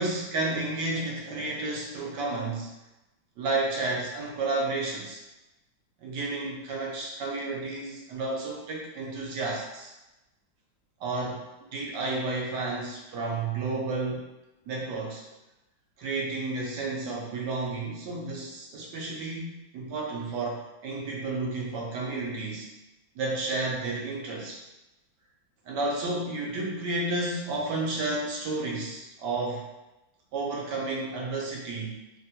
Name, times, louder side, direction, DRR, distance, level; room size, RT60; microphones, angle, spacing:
voice 1, 0.0-2.7 3.4-5.2 6.0-9.9 11.0-11.4 11.7-14.3 14.7-15.2 16.0-22.7 23.1-24.6 25.7-29.7 30.3-32.1, right 2 dB, 75° right, -2 dB, 1.1 m, -31 dB
3.3 x 2.2 x 2.7 m, 0.98 s
omnidirectional pair, 2.2 m